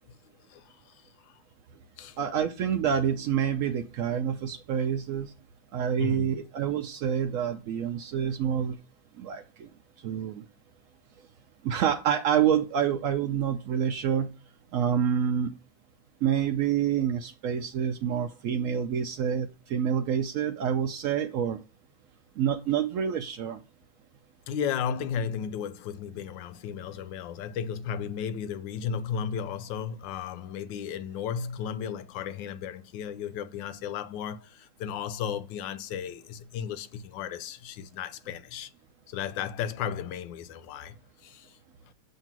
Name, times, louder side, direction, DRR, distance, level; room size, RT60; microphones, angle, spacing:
voice 1, 0.5-1.3 2.0-2.2 6.0-6.4 24.5-38.7 39.1-41.0 41.2-41.6, left 7 dB, 90° left, 1.3 m, -34 dB
voice 2, 2.2-5.3 5.7-8.8 9.2-9.7 10.0-10.4 11.6-14.3 14.7-15.5 16.2-21.6 22.4-23.6, right 8 dB, 80° right, 0.7 m, -27 dB
7.4 x 2.7 x 5.9 m
omnidirectional pair, 2.0 m